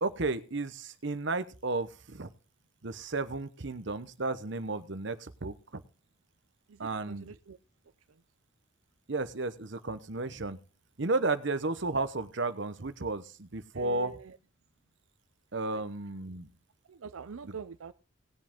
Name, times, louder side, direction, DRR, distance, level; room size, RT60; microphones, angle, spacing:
voice 1, 0.0-2.3 2.8-5.8 6.8-7.3 9.1-10.6 11.0-14.2 15.5-16.5 17.4-17.6, right 3 dB, 60° right, 0.9 m, -33 dB
voice 2, 6.7-7.6 13.8-14.3 16.9-17.9, right 5 dB, 85° right, 0.5 m, -45 dB
19.0 x 7.7 x 3.6 m
head